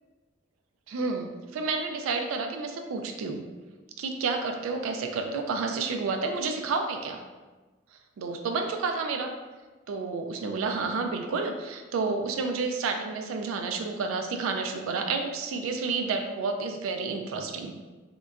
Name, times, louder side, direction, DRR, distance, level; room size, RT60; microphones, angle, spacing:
voice 1, 0.9-3.5 4.0-7.2 8.2-9.3 9.9-17.7, right 4 dB, 85° right, 5 dB, 0.3 m, -30 dB
3.7 x 2.1 x 2.3 m, 1.3 s
head